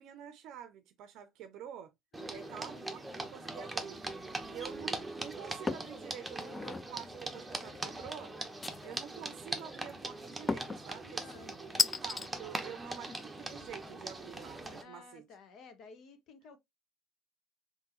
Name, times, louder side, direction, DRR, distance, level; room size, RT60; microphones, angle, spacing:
voice 1, 0.0-1.9 2.3-4.0 4.4-8.3 8.8-15.2, right 9 dB, 60° right, 0.6 m, -48 dB
voice 2, 2.1-2.5 10.9-11.8 14.8-16.6, left 5 dB, 55° left, 1.0 m, -55 dB
sound 1, 2.1-14.8, right 2 dB, 10° right, 0.9 m, -41 dB
sound 2, 5.7-6.0 6.4-6.9 8.6-9.2 10.5-10.8 11.8-12.3, left 3 dB, 20° left, 0.3 m, -33 dB
3.6 x 2.8 x 2.9 m
hypercardioid pair, 75°, 0 cm